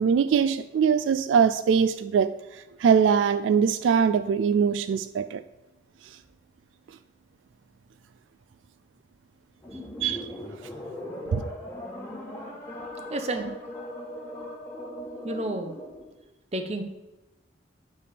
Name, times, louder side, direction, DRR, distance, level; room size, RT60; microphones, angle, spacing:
voice 1, 0.0-5.4 10.0-10.3 11.3-11.4, right 6 dB, 80° right, 0.3 m, -22 dB
sound 1, 9.6-16.1, left 1 dB, 15° left, 1.4 m, -39 dB
voice 2, 13.1-13.5 14.8-15.0 15.2-15.8 16.5-16.8, right 1 dB, 35° right, 0.7 m, -31 dB
9.5 x 3.5 x 6.7 m
head